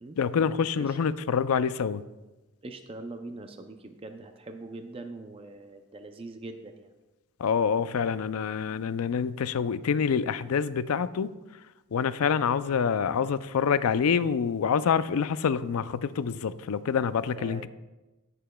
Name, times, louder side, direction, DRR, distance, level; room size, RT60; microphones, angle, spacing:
voice 1, 0.2-2.0 7.4-11.3 11.9-17.7, left 6 dB, 80° left, 15 dB, 0.4 m, -26 dB
voice 2, 2.6-6.9 17.4-17.7, right 2 dB, 25° right, 6 dB, 0.4 m, -42 dB
17.5 x 6.8 x 2.3 m, 1.1 s
head